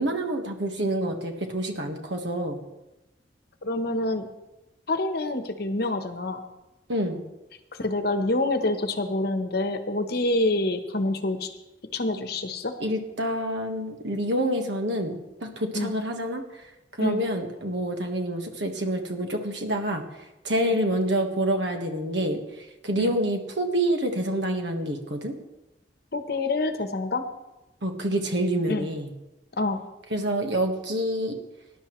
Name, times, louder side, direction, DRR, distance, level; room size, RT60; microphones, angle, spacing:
voice 1, 0.0-2.6 6.9-7.2 12.8-16.4 17.0-20.0 20.4-25.3 27.8-29.1 30.1-31.3, right 1 dB, 65° right, 4 dB, 1.5 m, -27 dB
voice 2, 3.6-4.3 4.9-6.4 7.8-11.5 11.9-12.7 15.7-15.9 17.0-17.2 20.6-20.8 23.0-23.2 26.1-27.2 28.7-28.8 29.6-29.8, left 2 dB, 55° left, 8 dB, 1.0 m, -27 dB
19.0 x 11.0 x 3.2 m, 0.99 s
head